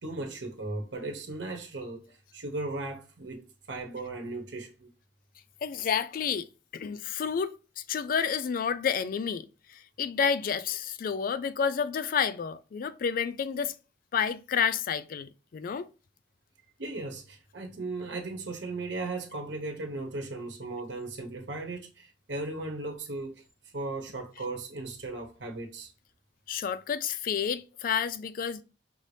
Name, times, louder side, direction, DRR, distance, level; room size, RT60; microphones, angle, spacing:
voice 1, 0.0-4.9 16.8-23.4 23.7-25.9, right 2 dB, 90° right, 0.9 m, -37 dB
voice 2, 5.6-6.5 6.7-7.5 7.9-13.7 14.1-15.9 26.5-28.6, left 7 dB, 50° left, 0.3 m, -30 dB
5.3 x 2.6 x 3.2 m
head